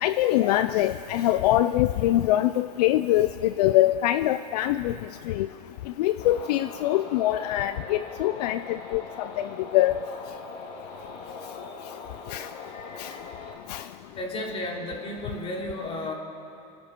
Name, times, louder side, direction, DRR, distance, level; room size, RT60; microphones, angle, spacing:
voice 1, 0.0-4.9 5.3-5.5 6.0-9.5 9.7-10.0 12.3-12.5 13.0-13.1 13.7-13.8, left 14 dB, 70° left, 11 dB, 0.5 m, -23 dB
sound 1, 6.2-13.5, left 3 dB, 45° left, 2.8 m, -41 dB
voice 2, 14.1-16.1, left 1 dB, 25° left, -1 dB, 3.4 m, -33 dB
29.5 x 10.5 x 4.5 m, 3.0 s
supercardioid pair, 120°, 21 cm